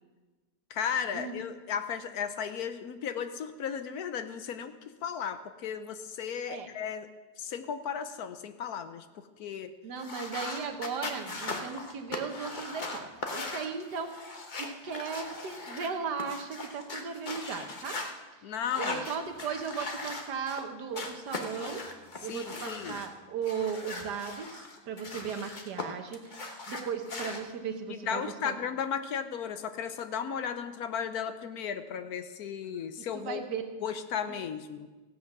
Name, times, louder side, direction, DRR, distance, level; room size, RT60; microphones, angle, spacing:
voice 1, 0.7-4.8 5.0-7.1 7.4-9.7 18.4-19.0 22.3-23.0 27.9-33.4 33.8-34.9, left 7 dB, 70° left, 10 dB, 1.1 m, -35 dB
voice 2, 9.8-14.2 14.6-18.0 18.8-21.9 22.2-28.6 33.0-33.6 34.3-34.4, right 6 dB, 75° right, 6 dB, 1.7 m, -37 dB
sound 1, 10.0-18.1 18.6-20.6 20.9-23.1 23.4-25.8 26.1-27.4, left 3 dB, 35° left, 1.0 m, -39 dB
15.5 x 8.2 x 6.0 m, 1.2 s
omnidirectional pair, 1.8 m